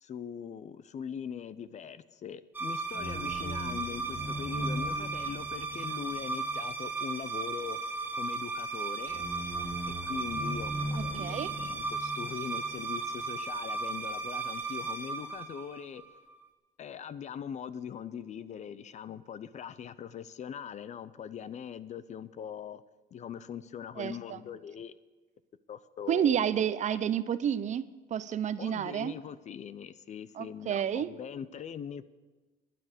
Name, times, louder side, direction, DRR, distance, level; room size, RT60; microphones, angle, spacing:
voice 1, 0.0-7.8 8.1-9.2 9.9-16.0 16.8-22.8 23.1-25.0 25.7-26.4 26.9-27.1 28.6-32.1, left 8 dB, 45° left, 16 dB, 0.6 m, -41 dB
sound 1, 2.5-16.2, right 3 dB, 10° right, 1.5 m, -35 dB
voice 2, 11.2-11.5 24.0-24.4 26.1-29.1 30.4-31.1, right 9 dB, 45° right, 15 dB, 0.6 m, -30 dB
12.5 x 9.4 x 6.7 m, 1.3 s
cardioid pair, 110°, 17 cm